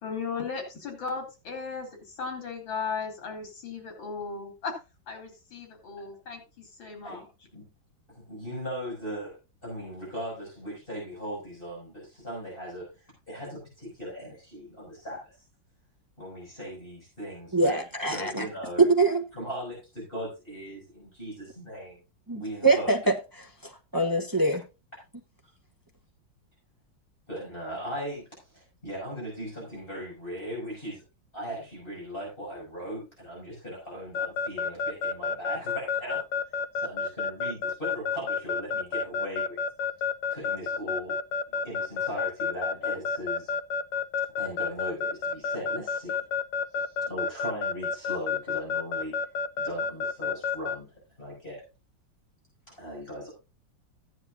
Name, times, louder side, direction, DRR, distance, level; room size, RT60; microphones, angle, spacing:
voice 1, 0.0-4.8 5.1-7.3, left 5 dB, 85° left, 3.7 m, -36 dB
voice 2, 8.1-15.2 16.2-17.8 18.1-18.9 19.3-22.0 22.3-22.9 27.3-31.0 31.3-36.2 36.7-39.6 40.3-41.2 41.5-43.5 44.4-46.2 46.7-49.2 49.6-50.9 51.2-51.6 52.7-53.3, equal, 25° left, 6.5 m, -38 dB
voice 3, 17.5-18.5 18.8-19.2 22.3-24.6, right 3 dB, 20° right, 0.5 m, -24 dB
Keyboard (musical) / Alarm, 34.1-50.8, left 6 dB, 70° left, 1.3 m, -29 dB
14.5 x 9.8 x 2.6 m
omnidirectional pair, 2.1 m